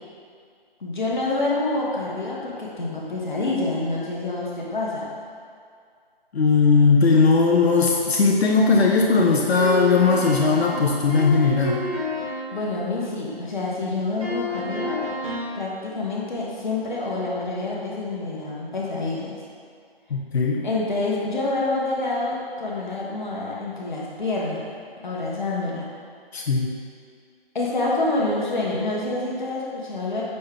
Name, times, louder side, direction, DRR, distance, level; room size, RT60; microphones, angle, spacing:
voice 1, 0.8-5.2 12.5-15.0 15.2-19.4 20.6-24.7 25.0-25.9 27.5-30.2, left 2 dB, 50° left, -4 dB, 1.0 m, -27 dB
voice 2, 6.3-11.8 20.1-20.6 26.3-26.7, left 4 dB, 85° left, -1 dB, 0.6 m, -18 dB
sound 1, 9.5-12.5 14.2-15.6, left 2 dB, 35° right, 0.8 m, -29 dB
5.4 x 2.8 x 3.4 m, 2.2 s
figure-of-eight pair, 170°, 31 cm